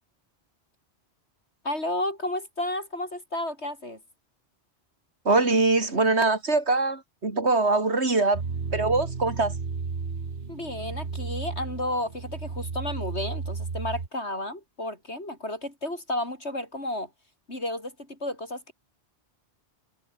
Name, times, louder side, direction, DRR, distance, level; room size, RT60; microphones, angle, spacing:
voice 1, 1.6-4.0 10.5-17.1 17.5-18.7, left 1 dB, 90° left, 8.2 m, -32 dB
voice 2, 5.3-8.4 8.7-9.5, right 3 dB, 90° right, 3.5 m, -23 dB
sound 1, 8.3-14.1, right 4 dB, 70° right, 2.0 m, -33 dB
omnidirectional pair, 1.1 m